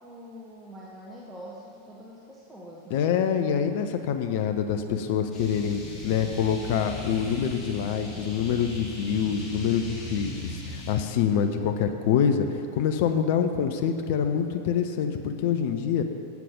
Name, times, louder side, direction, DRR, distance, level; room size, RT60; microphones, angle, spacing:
voice 1, 0.0-3.0, equal, 10° right, -5 dB, 1.1 m, -44 dB
voice 2, 2.9-12.5 12.7-16.0, left 8 dB, 50° left, 7 dB, 0.5 m, -26 dB
sound 1, 5.3-10.9, left 1 dB, 25° left, 2.3 m, -38 dB
8.2 x 7.5 x 5.2 m, 2.7 s
figure-of-eight pair, 90°, 0 cm